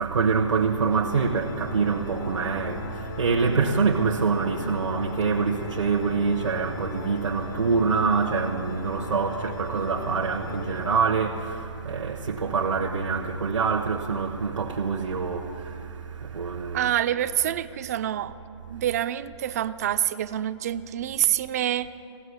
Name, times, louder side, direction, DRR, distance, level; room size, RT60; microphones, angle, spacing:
voice 1, 0.0-16.9, right 5 dB, 90° right, 0.9 m, -25 dB
Organ, 0.9-11.7, left 4 dB, 35° left, 0.6 m, -39 dB
voice 2, 16.7-18.3 18.7-21.9, right 11 dB, 35° right, 0.3 m, -26 dB
16.0 x 6.2 x 9.6 m
hypercardioid pair, 150°, 15 cm